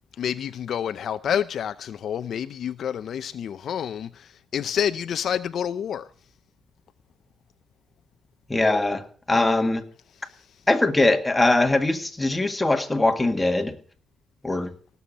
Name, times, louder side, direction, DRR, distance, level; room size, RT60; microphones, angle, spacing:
voice 1, 0.2-6.1 10.2-10.5, left 9 dB, 65° left, 0.6 m, -28 dB
voice 2, 8.5-9.8 10.7-13.8 14.4-14.7, left 2 dB, 10° left, 1.8 m, -21 dB
17.5 x 7.0 x 7.2 m
cardioid pair, 90°, 0 cm